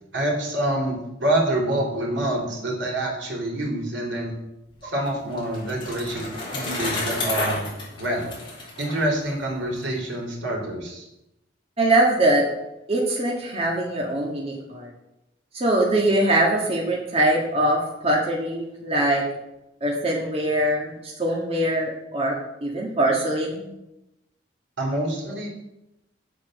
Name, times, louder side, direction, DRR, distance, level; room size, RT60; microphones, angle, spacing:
voice 1, 0.1-4.3 4.8-8.4 8.8-11.1 24.8-25.5, right 1 dB, 80° right, 0 dB, 3.4 m, -26 dB
Bicycle, 4.8-9.8, left 2 dB, 25° left, 3.8 m, -31 dB
voice 2, 11.8-12.5 12.9-14.9 15.5-19.2 19.8-22.3 22.6-23.7, right 1 dB, 30° right, -2 dB, 1.7 m, -22 dB
8.9 x 7.8 x 6.5 m, 0.90 s
head